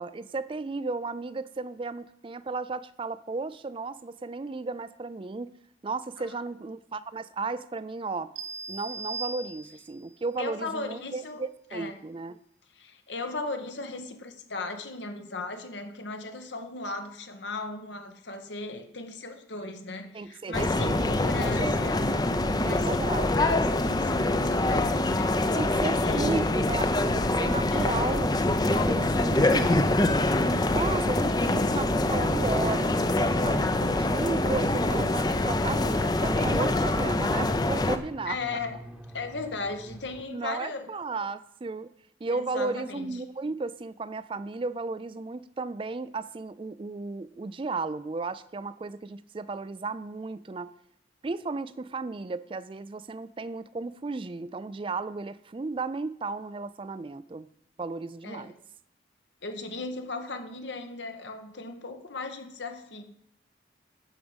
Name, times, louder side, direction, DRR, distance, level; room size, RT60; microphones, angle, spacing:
voice 1, 0.0-5.5 5.8-8.3 8.7-12.4 20.1-22.0 22.6-23.3 25.5-28.4 28.7-30.2 30.7-38.4 40.3-41.9 42.2-50.7 51.2-57.5 57.8-58.5, right 3 dB, 30° right, 15 dB, 0.4 m, -34 dB
sound 1, 8.4-10.1, right 4 dB, 75° right, 1.2 m, -38 dB
voice 2, 10.4-11.4 11.7-11.9 12.7-22.2 22.6-26.5 27.7-28.0 29.3-30.0 38.2-38.8 39.1-40.9 42.3-43.1 58.2-58.5 59.4-63.0, left 3 dB, 75° left, 6 dB, 1.5 m, -37 dB
sound 2, 20.5-38.0, left 2 dB, 20° left, 0.6 m, -25 dB
sound 3, 28.5-40.2, equal, 5° right, 1.0 m, -46 dB
11.0 x 5.0 x 8.0 m, 0.70 s
head